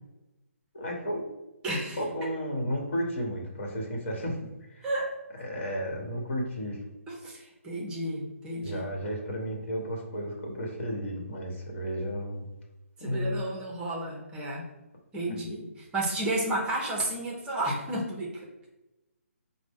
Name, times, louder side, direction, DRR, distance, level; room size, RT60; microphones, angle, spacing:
voice 1, 0.7-1.2 2.0-4.9 5.4-6.8 8.6-12.5 13.0-13.4 15.3-15.4, equal, 50° left, 0 dB, 1.3 m, -33 dB
voice 2, 1.6-2.3 4.8-5.2 7.1-8.9 13.0-14.7 15.1-18.5, right 1 dB, 10° right, -2 dB, 0.7 m, -32 dB
4.9 x 2.1 x 3.5 m, 1.0 s
hypercardioid pair, 150°, 8 cm